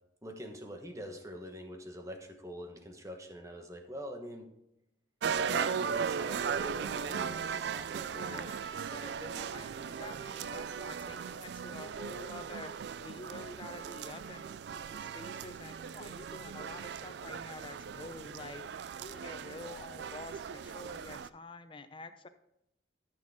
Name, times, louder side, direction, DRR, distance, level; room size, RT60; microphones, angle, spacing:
voice 1, 0.2-4.5 5.2-8.5, equal, 15° right, 4 dB, 1.1 m, -44 dB
sound 1, 5.2-21.3, right 7 dB, 60° right, 0.3 m, -38 dB
voice 2, 8.1-22.3, left 2 dB, 25° left, 10 dB, 0.6 m, -48 dB
13.5 x 6.5 x 3.6 m, 0.83 s
head